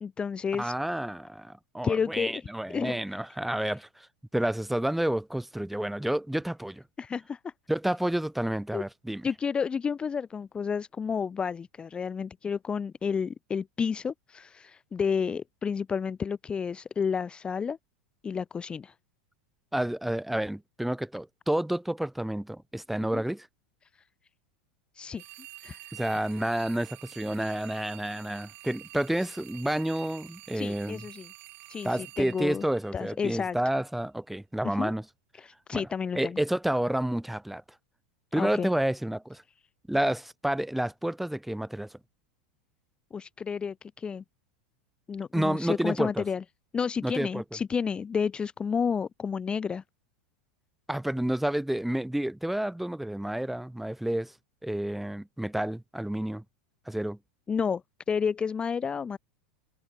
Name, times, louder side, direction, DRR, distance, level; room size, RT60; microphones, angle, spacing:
voice 1, 0.0-0.7 1.8-2.4 2.7-3.0 3.6-3.7 7.0-7.5 8.7-8.8 9.2-17.8 18.2-18.9 23.1-23.2 25.0-25.2 25.6-25.9 30.5-31.3 31.7-32.6 32.9-33.6 34.6-34.9 35.4-36.4 38.4-38.7 43.1-44.2 45.1-46.4 46.7-49.8 57.5-57.8 58.1-59.2, left 6 dB, 20° left, 0.5 m, -31 dB
voice 2, 0.5-4.1 4.3-6.8 7.7-9.3 19.7-23.5 25.9-31.0 31.8-35.0 35.7-35.9 36.1-37.6 38.3-39.4 39.9-41.9 45.3-46.3 47.0-47.4 50.9-54.3 54.6-56.4 56.9-57.2, right 1 dB, 5° right, 1.0 m, -30 dB
sound 1, 25.2-33.4, right 20 dB, 50° right, 2.1 m, -48 dB
open air
hypercardioid pair, 105°, 5 cm